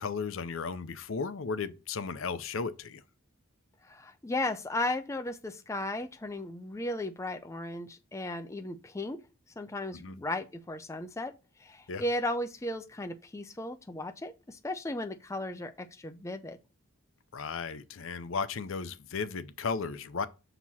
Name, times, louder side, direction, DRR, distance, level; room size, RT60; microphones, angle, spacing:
voice 1, 0.0-3.0 9.9-10.2 11.9-12.0 17.3-20.3, left 5 dB, 65° left, 0.5 m, -35 dB
voice 2, 3.8-9.2 9.6-11.3 11.6-16.6, left 1 dB, 15° left, 0.4 m, -35 dB
6.0 x 3.0 x 5.5 m
head